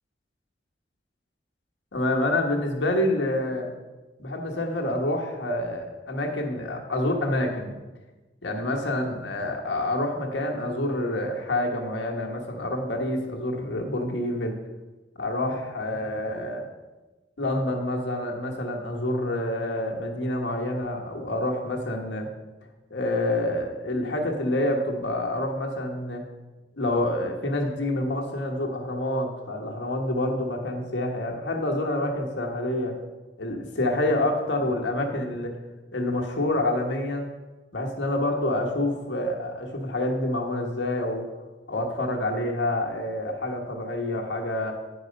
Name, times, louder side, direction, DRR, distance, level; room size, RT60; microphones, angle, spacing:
voice 1, 1.9-3.7 4.2-7.7 8.4-14.6 15.2-16.7 17.4-22.3 22.9-26.3 26.7-33.0 33.4-35.6 35.9-37.3 37.7-41.3 41.7-44.7, left 1 dB, 85° left, 1 dB, 1.3 m, -27 dB
9.7 x 4.9 x 5.2 m, 1.2 s
head